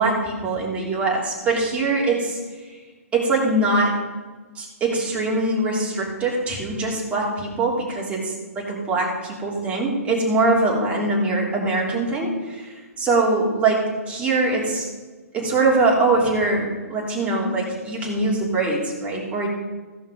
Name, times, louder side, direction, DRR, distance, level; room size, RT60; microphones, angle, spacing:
voice 1, 0.0-2.4 2.6-2.8 3.1-4.0 4.5-14.9 15.3-19.5, right 2 dB, 15° right, -3 dB, 3.0 m, -22 dB
16.0 x 5.6 x 5.2 m, 1.3 s
figure-of-eight pair, 130°, 8 cm